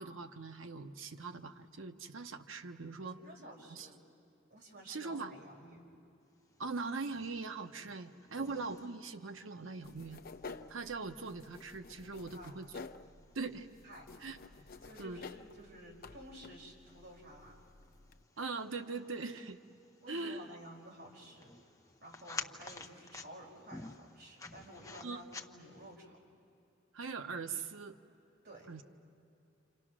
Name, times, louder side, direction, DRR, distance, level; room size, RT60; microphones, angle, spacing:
voice 1, 0.0-3.2 3.7-3.9 4.9-5.3 6.6-10.2 10.7-12.7 13.3-13.7 14.2-14.4 15.0-15.2 18.4-19.6 20.1-20.5 25.0-25.2 26.9-28.0 28.7-28.8, right 4 dB, 80° right, 8 dB, 1.0 m, -41 dB
voice 2, 3.0-3.9 4.5-5.8 12.3-12.6 13.8-14.2 14.8-17.6 20.0-26.2 28.4-28.7, right 1 dB, 55° right, -2 dB, 5.2 m, -53 dB
sound 1, 6.5-26.0, left 3 dB, 15° left, 0.9 m, -53 dB
sound 2, 9.8-18.2, left 4 dB, 50° left, 0.7 m, -52 dB
29.5 x 27.5 x 6.2 m, 2.7 s
head